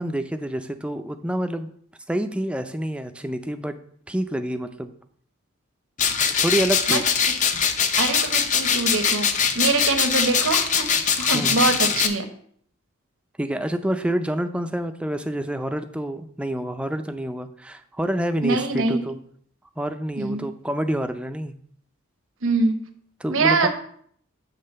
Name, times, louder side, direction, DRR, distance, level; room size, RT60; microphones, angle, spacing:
voice 1, 0.0-1.7 2.1-3.8 4.1-4.9 6.4-7.1 11.3-11.6 13.4-19.2 19.8-21.5 23.2-23.7, right 1 dB, 5° right, 8 dB, 0.4 m, -27 dB
sound 1, 6.0-12.1, left 6 dB, 40° left, 0.6 m, -22 dB
voice 2, 8.0-10.9 11.2-12.2 18.4-19.0 20.2-20.5 22.4-22.8 23.3-23.7, right 3 dB, 80° right, 6 dB, 0.9 m, -23 dB
7.5 x 3.8 x 6.6 m, 0.62 s
head